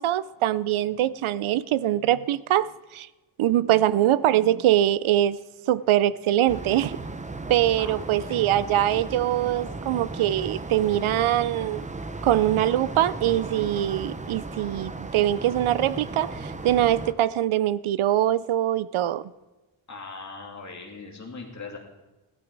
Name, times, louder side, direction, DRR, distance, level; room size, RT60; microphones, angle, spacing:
voice 1, 0.0-3.1 3.4-5.4 5.7-7.0 7.5-11.8 12.2-19.3, right 12 dB, 80° right, 0.6 m, -23 dB
sound 1, 6.5-17.1, right 3 dB, 15° right, 0.6 m, -36 dB
voice 2, 19.9-21.8, left 4 dB, 35° left, 2.6 m, -40 dB
17.0 x 12.0 x 4.7 m
wide cardioid pair, 180°, 48 cm